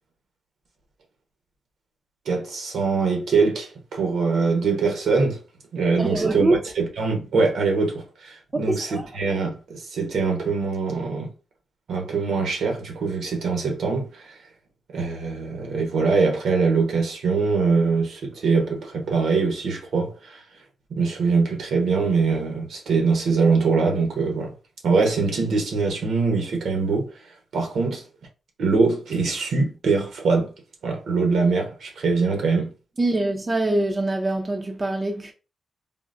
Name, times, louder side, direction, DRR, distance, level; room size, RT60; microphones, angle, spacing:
voice 1, 2.3-5.4 5.7-11.3 11.9-14.4 14.9-20.4 20.9-24.5 24.8-27.1 27.5-28.0 28.6-30.5 30.8-32.7, right 4 dB, 75° right, 0.9 m, -23 dB
voice 2, 6.0-6.6 8.5-9.1 33.0-35.3, right 2 dB, 25° right, 0.5 m, -24 dB
3.7 x 2.0 x 2.5 m
cardioid pair, 95°, 0 cm